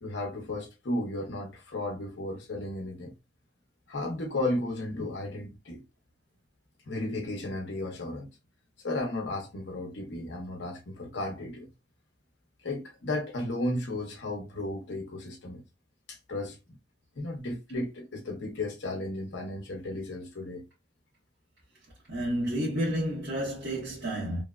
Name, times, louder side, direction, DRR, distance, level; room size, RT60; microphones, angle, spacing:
voice 1, 0.0-3.1 3.9-5.8 6.9-8.3 8.8-11.7 12.6-15.6 16.1-16.8 17.2-20.7, left 1 dB, 80° left, 0.7 m, -34 dB
voice 2, 22.1-24.4, equal, 75° right, 1.2 m, -30 dB
3.0 x 2.1 x 2.3 m
head